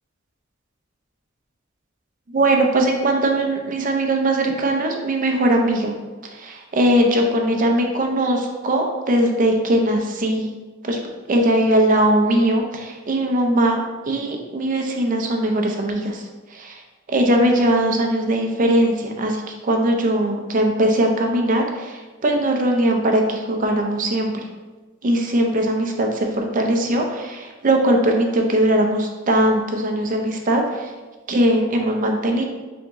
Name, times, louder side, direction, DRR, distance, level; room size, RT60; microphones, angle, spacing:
voice 1, 2.3-5.9 6.3-10.5 10.8-11.0 11.3-16.2 16.5-16.8 17.1-24.3 25.0-30.9 31.3-32.4, right 1 dB, 40° right, 2 dB, 0.5 m, -20 dB
3.5 x 2.9 x 3.5 m, 1.3 s
head